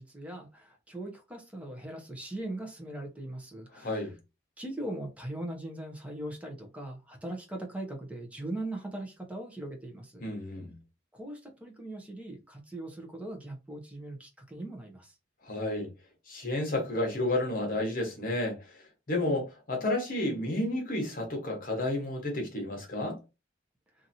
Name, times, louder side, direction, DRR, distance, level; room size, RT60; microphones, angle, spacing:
voice 1, 0.0-4.1 4.6-10.3 11.1-15.1, right 1 dB, 5° right, 0.6 m, -40 dB
voice 2, 3.7-4.1 10.2-10.8 15.5-15.9 16.3-18.6 19.1-23.2, left 1 dB, 45° left, 1.0 m, -31 dB
2.8 x 2.5 x 2.6 m
head